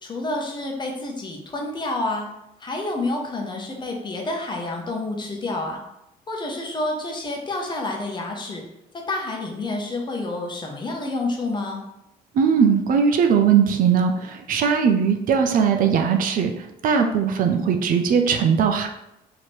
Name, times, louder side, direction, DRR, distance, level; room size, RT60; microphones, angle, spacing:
voice 1, 0.0-2.3 2.6-5.8 6.3-8.6 8.9-11.8, left 2 dB, 25° left, 1 dB, 0.9 m, -29 dB
voice 2, 12.3-18.9, right 7 dB, 55° right, 5 dB, 0.5 m, -19 dB
3.2 x 2.8 x 4.3 m, 0.85 s
cardioid pair, 110°, 17 cm